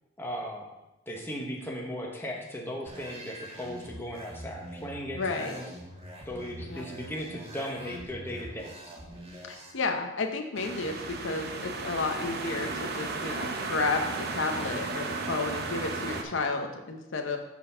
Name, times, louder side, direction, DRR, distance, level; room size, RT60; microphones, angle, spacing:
voice 1, 0.2-0.7 1.1-5.7 6.3-8.7, equal, 10° left, -1 dB, 1.2 m, -37 dB
sound 1, 2.9-9.7, right 1 dB, 30° right, 1.5 m, -44 dB
voice 2, 5.1-5.6 6.6-6.9 9.4-17.4, left 3 dB, 70° left, 4 dB, 0.8 m, -32 dB
sound 2, 10.6-16.2, right 3 dB, 55° right, 0.9 m, -34 dB
8.1 x 4.2 x 5.6 m, 0.98 s
head